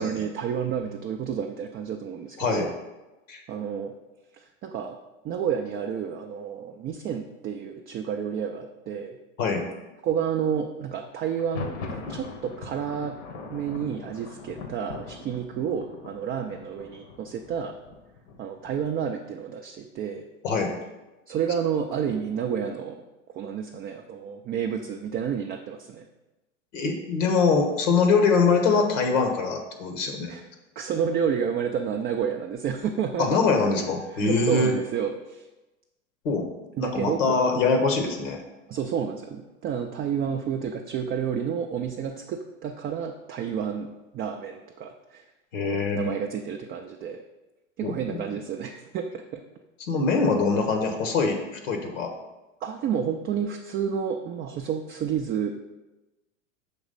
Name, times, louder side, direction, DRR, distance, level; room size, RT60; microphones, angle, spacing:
voice 1, 0.0-2.7 3.5-3.9 4.3-5.0 5.2-9.2 10.0-13.2 13.5-17.8 18.4-20.3 21.3-23.0 23.3-26.1 30.3-30.5 30.8-33.3 34.1-35.5 36.8-37.4 38.7-45.3 45.9-47.2 47.8-49.4 52.6-55.5, right 7 dB, 25° right, 3 dB, 0.3 m, -30 dB
Thunder, 11.3-19.1, left 4 dB, 60° left, 1.0 m, -41 dB
voice 2, 26.7-30.3 33.2-34.7 36.2-36.5 36.8-38.4 45.5-46.1 47.8-48.2 49.8-52.1, left 4 dB, 80° left, 4 dB, 1.2 m, -23 dB
6.0 x 3.1 x 5.3 m, 1.1 s
hypercardioid pair, 100°, 38 cm